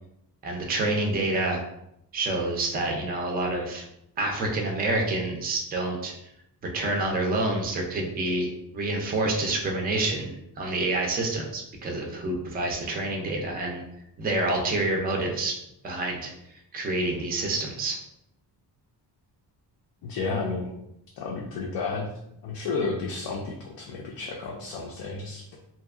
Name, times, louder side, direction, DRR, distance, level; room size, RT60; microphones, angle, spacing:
voice 1, 0.4-1.6 2.1-3.8 4.2-6.1 6.7-13.8 14.2-15.6 15.8-16.3 16.7-18.0, right 2 dB, 25° right, 1 dB, 0.4 m, -27 dB
voice 2, 20.0-20.7 21.2-22.1 22.4-25.6, left 4 dB, 75° left, -1 dB, 0.5 m, -32 dB
2.7 x 2.2 x 2.3 m, 0.80 s
wide cardioid pair, 135°, 43 cm